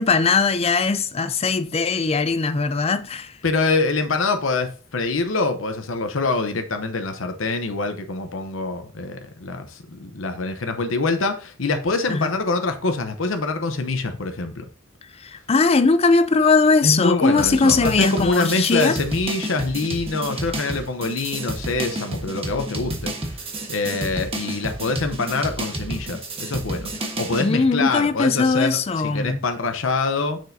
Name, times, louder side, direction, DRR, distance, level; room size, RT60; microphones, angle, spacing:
voice 1, 0.0-3.3 12.1-12.3 15.2-19.0 27.4-29.4, left 4 dB, 30° left, 0.4 m, -20 dB
voice 2, 3.4-14.6 16.8-23.1 23.7-30.4, left 3 dB, 70° left, 0.8 m, -25 dB
sound 1, 17.4-27.5, right 1 dB, 30° right, 1.2 m, -31 dB
6.6 x 6.2 x 2.7 m
head